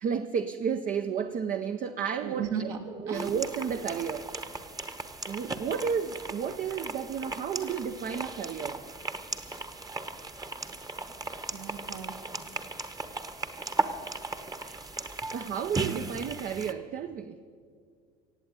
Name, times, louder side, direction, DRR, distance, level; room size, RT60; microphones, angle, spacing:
voice 1, 0.0-2.7 3.0-4.3 5.3-8.8 14.6-14.8 15.3-17.4, right 7 dB, 50° right, 0.7 m, -32 dB
voice 2, 2.2-3.3 11.5-12.2, right 6 dB, 75° right, 2.2 m, -36 dB
sound 1, 3.1-16.7, right 3 dB, 20° right, 1.1 m, -37 dB
17.0 x 7.9 x 9.0 m
supercardioid pair, 80°, 18 cm